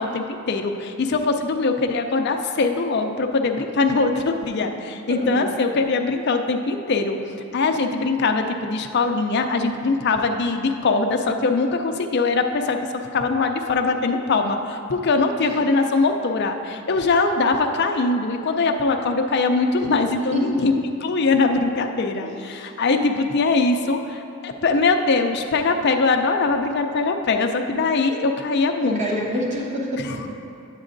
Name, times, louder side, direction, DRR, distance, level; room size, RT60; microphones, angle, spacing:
voice 1, 0.0-7.2 7.5-12.8 13.1-20.7 21.0-29.2 30.0-30.2, left 3 dB, 50° left, 5 dB, 0.4 m, -22 dB
voice 2, 5.1-5.4 15.4-15.6 20.3-20.6 22.2-22.3 28.8-30.3, equal, 35° right, -3 dB, 1.1 m, -27 dB
9.5 x 8.2 x 2.6 m, 2.7 s
head